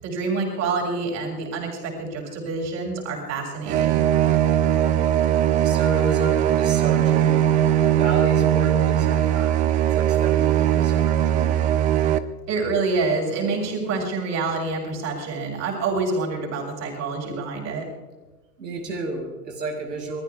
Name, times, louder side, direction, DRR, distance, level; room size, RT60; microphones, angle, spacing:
voice 1, 0.0-4.0 12.5-17.9, right 3 dB, 35° right, 0 dB, 7.1 m, -27 dB
sound 1, 3.6-12.2, right 11 dB, 15° right, 0.5 m, -20 dB
voice 2, 5.6-7.6 7.9-9.7 9.9-11.7 18.6-20.2, right 2 dB, 85° right, 2 dB, 5.3 m, -32 dB
29.5 x 20.0 x 2.4 m, 1.3 s
hypercardioid pair, 120°, 49 cm